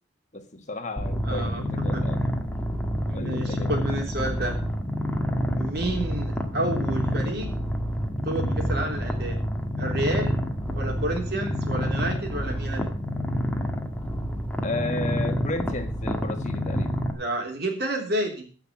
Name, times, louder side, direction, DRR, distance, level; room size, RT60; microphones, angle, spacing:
voice 1, 0.3-2.2 3.1-3.7 14.6-16.9, left 2 dB, 40° left, 6 dB, 1.5 m, -33 dB
Purr, 1.0-17.1, equal, 10° left, 1.4 m, -28 dB
voice 2, 1.2-1.6 1.9-2.4 3.1-4.6 5.5-7.6 8.2-9.4 9.8-10.4 10.8-12.9 17.1-18.5, right 1 dB, 55° right, 2 dB, 3.4 m, -30 dB
15.5 x 5.8 x 7.3 m, 0.40 s
head